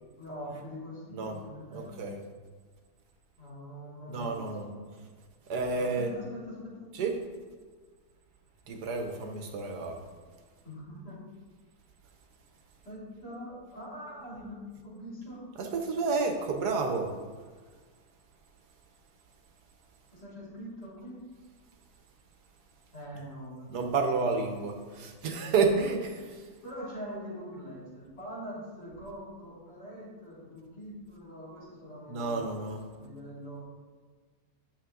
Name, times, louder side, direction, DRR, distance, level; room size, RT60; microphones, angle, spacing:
voice 1, 0.2-2.0 3.4-4.4 5.7-6.9 10.6-11.2 12.8-15.4 20.1-21.2 22.9-24.4 26.6-32.4 32.9-33.6, equal, 80° left, -6 dB, 3.6 m, -43 dB
voice 2, 1.7-2.2 4.1-4.7 5.5-6.1 6.9-7.1 8.7-10.0 15.6-17.1 23.7-26.4 32.1-32.8, right 4 dB, 90° right, 4 dB, 1.6 m, -30 dB
9.0 x 6.6 x 3.9 m, 1.5 s
omnidirectional pair, 1.7 m